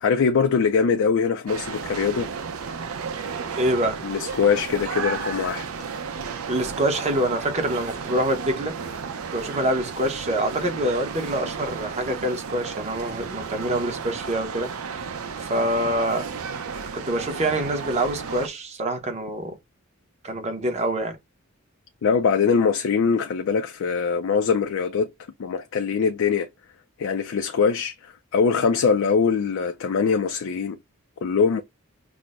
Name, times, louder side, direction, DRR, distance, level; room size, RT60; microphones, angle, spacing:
voice 1, 0.0-2.3 4.0-5.7 22.0-25.1 25.4-26.5 27.0-27.9 28.3-30.8 31.2-31.6, left 5 dB, 65° left, 0.4 m, -22 dB
sound 1, 1.5-18.5, right 5 dB, 85° right, 0.6 m, -33 dB
voice 2, 3.6-4.0 6.5-8.7 9.3-14.7 15.4-16.3 16.9-19.6 20.2-21.2, right 1 dB, 30° right, 0.9 m, -25 dB
5.9 x 2.0 x 2.4 m
head